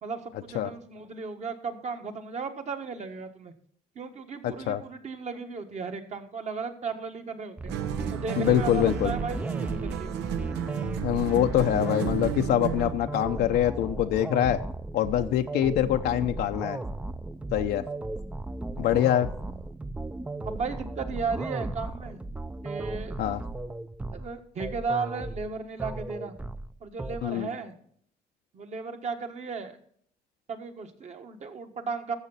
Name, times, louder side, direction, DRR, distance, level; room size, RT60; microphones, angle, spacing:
voice 1, 0.0-3.5 3.9-7.7 8.1-10.2 19.4-19.7 20.4-22.2 22.6-23.2 24.1-26.3 26.8-27.7 28.5-29.8 30.5-32.2, right 4 dB, 45° right, 6 dB, 1.5 m, -35 dB
voice 2, 4.4-4.8 8.4-9.1 11.0-14.6 14.9-16.8 17.5-17.8 18.8-19.3 23.2-23.4 27.2-27.5, left 11 dB, 75° left, 6 dB, 0.6 m, -24 dB
sound 1, 7.6-27.2, right 2 dB, 10° right, 0.4 m, -35 dB
sound 2, 7.7-13.0, right 11 dB, 85° right, 0.8 m, -33 dB
14.0 x 7.1 x 4.1 m, 0.62 s
cardioid pair, 110°, 17 cm